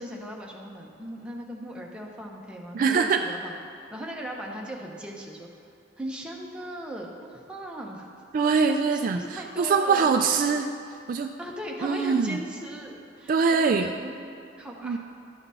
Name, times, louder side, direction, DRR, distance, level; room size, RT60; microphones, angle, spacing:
voice 1, 0.0-3.6 3.9-5.5 6.0-8.1 8.7-10.1 11.4-15.0, equal, 5° right, -2 dB, 0.9 m, -38 dB
voice 2, 2.7-3.2 8.3-10.7 11.1-11.3 11.8-12.4 13.3-13.9 14.8-15.0, right 5 dB, 50° right, 5 dB, 0.3 m, -23 dB
12.0 x 4.0 x 5.5 m, 2.6 s
head